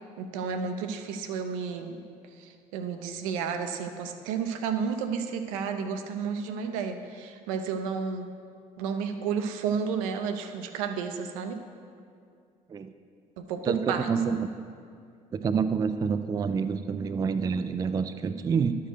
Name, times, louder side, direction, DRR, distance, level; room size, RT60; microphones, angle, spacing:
voice 1, 0.2-2.0 2.4-8.2 8.8-11.6 13.4-14.1, right 6 dB, 65° right, 7 dB, 0.6 m, -32 dB
voice 2, 13.6-14.5 15.3-18.8, right 6 dB, 20° right, 10 dB, 0.3 m, -27 dB
11.5 x 4.6 x 4.7 m, 2.3 s
figure-of-eight pair, 50°, 19 cm